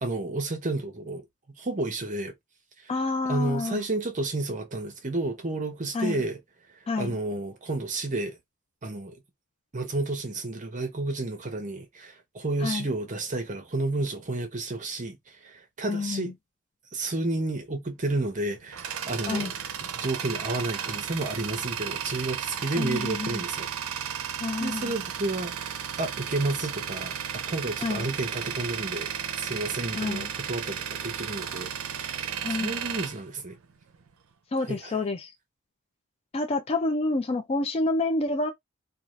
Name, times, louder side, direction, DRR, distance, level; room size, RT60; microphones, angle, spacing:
voice 1, 0.0-1.2 1.6-2.3 3.3-6.4 7.0-8.4 8.8-9.2 9.7-16.3 16.9-19.5 19.8-23.7 24.6-25.5 26.0-29.1 29.4-33.5 34.6-35.0, right 2 dB, 35° right, 0.8 m, -31 dB
voice 2, 2.9-3.8 5.9-6.2 6.9-7.2 12.6-12.9 15.9-16.3 19.3-19.5 22.8-23.4 24.4-24.9 27.8-28.1 30.0-30.3 32.4-32.7 34.5-35.3 36.3-38.5, left 3 dB, 30° left, 0.4 m, -28 dB
Tools, 18.3-34.1, right 8 dB, 70° right, 0.5 m, -34 dB
2.6 x 2.4 x 3.1 m
head